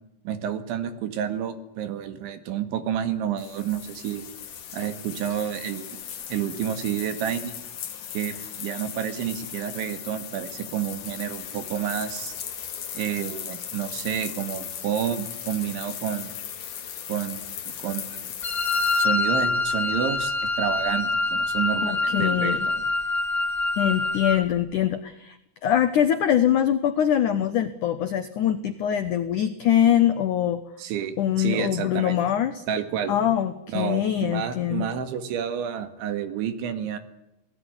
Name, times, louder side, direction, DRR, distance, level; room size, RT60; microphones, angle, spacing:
voice 1, 0.3-4.2 4.7-6.0 6.3-7.5 8.1-12.4 12.9-16.3 17.1-17.5 17.8-18.3 19.0-22.8 30.8-32.2 32.7-33.2 33.7-37.0, right 9 dB, 80° right, 10 dB, 4.4 m, -30 dB
sound 1, 3.4-19.1, left 9 dB, 50° left, 3.1 m, -37 dB
Wind instrument woodwind instrument, 18.4-24.5, left 3 dB, 15° left, 2.2 m, -25 dB
voice 2, 21.8-22.7 23.8-25.4 25.6-30.6 31.2-32.6 33.1-34.9, left 10 dB, 85° left, 10 dB, 1.7 m, -23 dB
27.5 x 17.5 x 9.8 m, 0.89 s
omnidirectional pair, 5.3 m